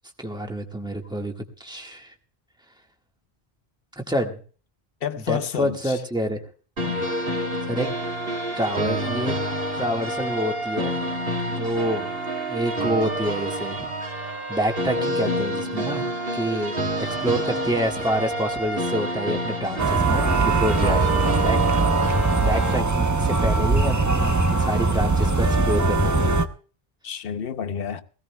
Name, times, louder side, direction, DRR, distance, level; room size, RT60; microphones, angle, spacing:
voice 1, 0.2-1.3 1.6-2.1 4.0-4.4 5.3-6.4 7.6-7.9 8.5-9.3 9.7-11.1 11.4-12.1 12.5-13.9 14.1-21.6 21.9-26.4, equal, 5° right, 1.5 m, -28 dB
voice 2, 5.0-6.0 6.8-7.1 27.0-28.0, left 8 dB, 65° left, 1.0 m, -30 dB
sound 1, 6.8-22.8, right 1 dB, 65° right, 2.5 m, -28 dB
sound 2, 19.8-26.4, right 3 dB, 20° right, 0.6 m, -21 dB
20.5 x 16.5 x 2.2 m
omnidirectional pair, 1.1 m